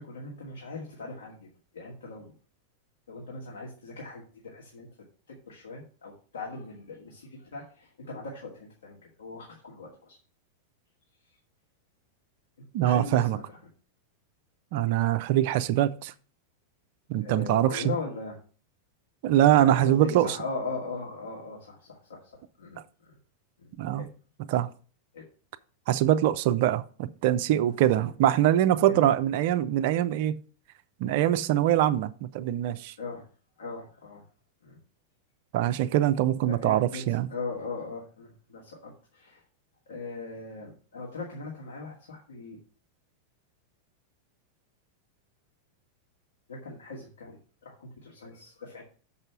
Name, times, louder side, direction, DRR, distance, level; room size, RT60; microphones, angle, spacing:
voice 1, 0.0-1.5 1.7-2.3 3.1-4.9 5.3-10.2 12.8-13.4 17.2-18.4 19.6-23.1 23.6-24.1 25.1-25.2 25.9-26.0 27.6-27.8 28.0-28.1 28.9-29.2 33.0-33.3 33.6-34.2 34.6-34.8 36.4-39.4 39.9-42.6 46.5-48.8, left 3 dB, 65° left, 2.2 m, -39 dB
voice 2, 12.7-13.4 14.7-16.1 17.1-17.8 19.2-20.3 23.8-24.0 24.5-24.7 25.9-30.4 31.0-32.9 35.5-37.3, right 12 dB, 50° right, 0.5 m, -23 dB
6.6 x 5.5 x 5.9 m
figure-of-eight pair, 90°, 0 cm